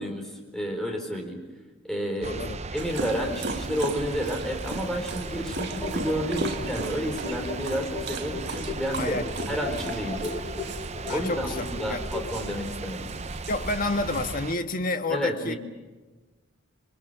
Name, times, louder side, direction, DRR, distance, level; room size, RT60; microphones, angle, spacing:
voice 1, 0.0-1.4 1.8-2.4 2.7-9.2 9.5-10.2 11.1-13.1 15.1-15.6, equal, ahead, 4.3 m, -31 dB
voice 2, 2.2-2.6 9.0-9.6 11.1-12.0 13.5-15.5, left 2 dB, 45° left, 1.5 m, -30 dB
sound 1, 2.2-14.5, right 3 dB, 35° right, 0.8 m, -36 dB
Dog, 2.8-14.3, right 3 dB, 60° right, 1.8 m, -38 dB
sound 2, 5.1-12.7, left 3 dB, 20° left, 6.6 m, -37 dB
28.0 x 23.0 x 6.9 m
head